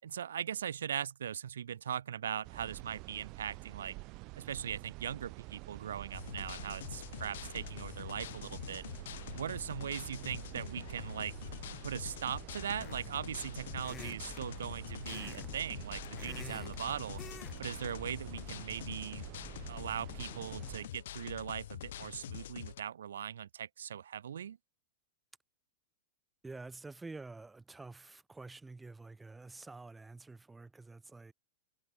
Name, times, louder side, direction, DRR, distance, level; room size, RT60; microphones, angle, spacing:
voice 1, 0.0-4.0 4.4-8.8 9.3-11.3 11.8-17.2 17.6-19.4 19.7-24.6, right 9 dB, 85° right, 5.0 m, -40 dB
sound 1, 2.4-20.9, right 26 dB, 45° right, 1.7 m, -48 dB
sound 2, 6.1-22.8, left 12 dB, 75° left, 1.9 m, -45 dB
sound 3, 12.8-13.2 13.8-14.4 15.0-15.5 15.8-16.8 17.2-17.6 17.9-18.1, left 8 dB, 25° left, 2.7 m, -49 dB
voice 2, 26.4-31.3, right 3 dB, 10° right, 4.5 m, -48 dB
hypercardioid pair, 120°, 0 cm